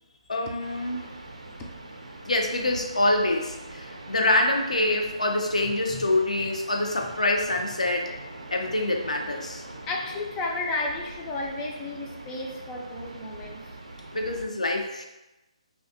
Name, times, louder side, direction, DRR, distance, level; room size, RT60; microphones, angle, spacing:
voice 1, 0.3-1.0 2.3-8.1 8.5-9.6 14.1-15.0, left 1 dB, 85° left, 3 dB, 0.4 m, -25 dB
sound 1, 0.6-14.5, right 2 dB, 85° right, 0.4 m, -43 dB
voice 2, 5.6-6.1 9.9-13.6, left 2 dB, 20° left, 0 dB, 0.3 m, -33 dB
2.6 x 2.2 x 2.5 m, 0.98 s
figure-of-eight pair, 145°, 4 cm